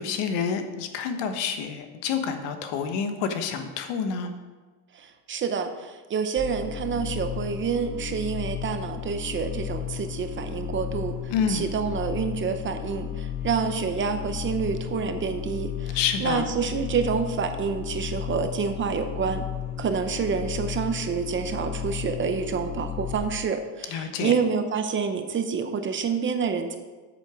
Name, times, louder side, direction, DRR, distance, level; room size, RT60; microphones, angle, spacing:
voice 1, 0.0-4.3 11.3-11.6 15.9-16.5 23.9-24.3, left 6 dB, 75° left, 7 dB, 1.3 m, -28 dB
voice 2, 4.9-11.2 11.5-19.5 19.8-26.8, right 6 dB, 30° right, 8 dB, 0.6 m, -28 dB
sound 1, 6.4-23.2, left 9 dB, 5° right, 1.5 m, -34 dB
8.4 x 7.6 x 5.0 m, 1.3 s
cardioid pair, 155°, 42 cm